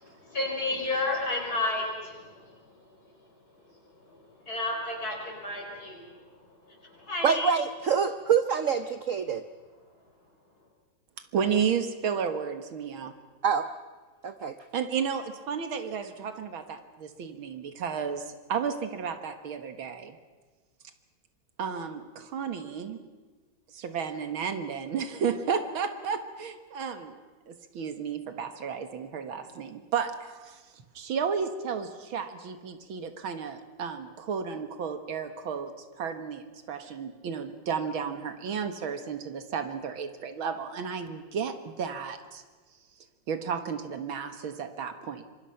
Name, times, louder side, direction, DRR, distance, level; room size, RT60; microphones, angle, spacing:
voice 1, 0.0-2.3 4.5-5.1 5.4-6.0 6.9-7.5, left 2 dB, 45° left, 0 dB, 6.0 m, -31 dB
voice 2, 7.2-9.4 13.4-13.7 14.2-14.5, right 7 dB, 55° right, 10 dB, 0.9 m, -25 dB
voice 3, 11.3-13.1 14.7-20.2 21.6-23.0 23.7-27.2 27.5-42.4 43.3-45.2, right 6 dB, 85° right, 8 dB, 2.3 m, -33 dB
26.5 x 24.0 x 5.8 m, 1.3 s
omnidirectional pair, 2.2 m